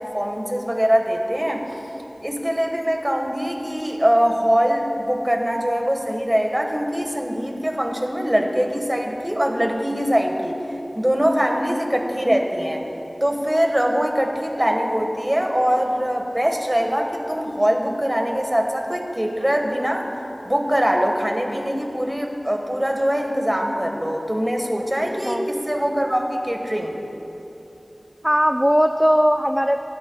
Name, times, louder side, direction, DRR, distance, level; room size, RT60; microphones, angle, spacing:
voice 1, 0.0-1.6 2.2-10.6 11.0-12.8 13.2-20.1 20.4-27.0, equal, 20° right, 2 dB, 1.5 m, -22 dB
voice 2, 28.2-29.8, equal, 5° right, 7 dB, 0.4 m, -18 dB
25.0 x 11.0 x 2.4 m, 3.0 s
wide cardioid pair, 45°, 0 cm